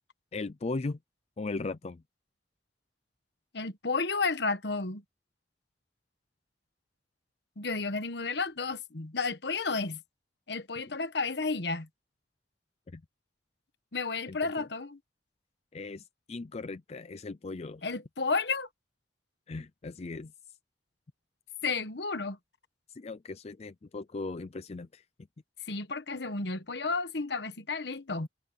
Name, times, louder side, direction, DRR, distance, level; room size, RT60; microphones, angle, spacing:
voice 1, 0.3-1.0 1.4-2.0 12.9-13.0 14.3-14.7 15.7-17.8 19.5-20.3 22.9-25.0, left 3 dB, 35° left, 0.5 m, -38 dB
voice 2, 3.5-5.0 7.6-10.0 10.5-11.9 13.9-15.0 17.8-18.7 21.6-22.4 25.6-28.3, left 4 dB, 65° left, 1.3 m, -32 dB
head